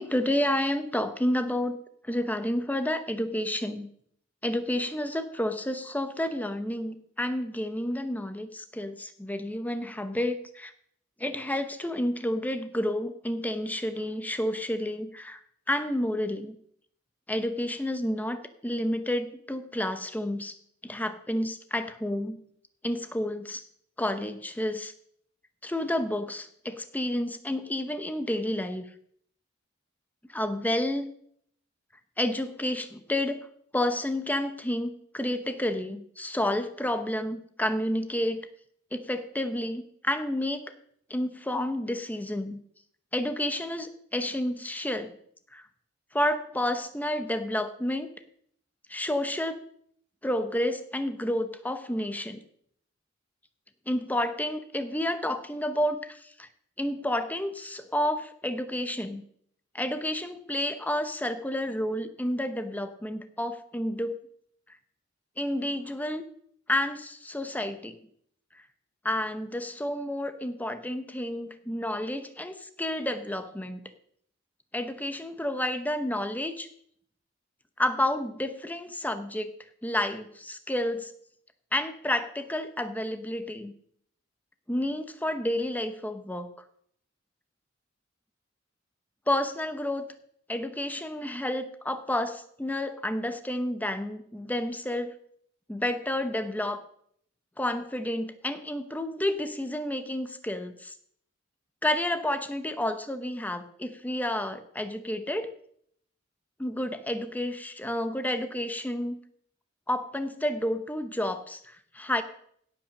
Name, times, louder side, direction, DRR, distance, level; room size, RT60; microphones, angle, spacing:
voice 1, 0.0-1.8 2.0-3.9 4.4-10.7 11.2-15.4 15.7-16.6 17.3-20.5 20.8-22.4 22.8-23.6 24.0-24.9 25.6-28.9 30.3-31.1 32.2-33.5 33.7-38.4 38.9-40.7 41.1-42.6 43.1-45.1 45.5-45.6 46.1-48.1 48.9-49.6 50.2-52.4 53.9-56.5 56.8-59.2 59.7-64.2 65.4-66.2 66.7-67.9 69.0-73.8 74.7-76.7 77.8-79.5 79.8-81.1 81.7-83.7 84.7-86.5 89.3-90.1 90.5-95.1 95.7-96.8 97.6-100.9 101.8-105.5 106.6-109.2 109.9-112.2, left 1 dB, 10° left, 9 dB, 0.8 m, -30 dB
16.5 x 5.8 x 6.5 m, 0.66 s
head